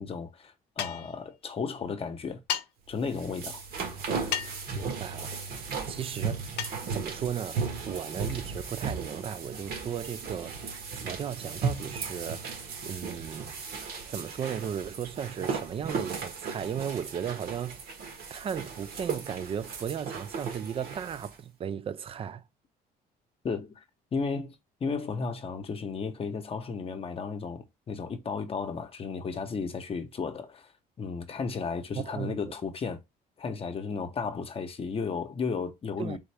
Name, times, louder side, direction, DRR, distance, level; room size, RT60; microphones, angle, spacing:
voice 1, 0.0-2.4 2.9-3.6 23.4-23.8 24.1-24.6 24.8-30.7 31.0-33.0 33.4-36.2, left 5 dB, 35° left, 0.8 m, -34 dB
sound 1, 0.8-1.1 2.5-2.7 4.3-4.7 6.6-6.8, left 9 dB, 75° left, 0.6 m, -32 dB
sound 2, 2.9-21.3, right 5 dB, 60° right, 1.3 m, -36 dB
voice 2, 4.7-5.5 5.9-6.4 6.9-10.6 10.9-12.5 12.9-13.5 14.1-17.9 18.3-22.4 31.9-32.5 36.0-36.2, right 8 dB, 35° right, 0.4 m, -36 dB
3.9 x 3.6 x 3.3 m
cardioid pair, 110°, 17 cm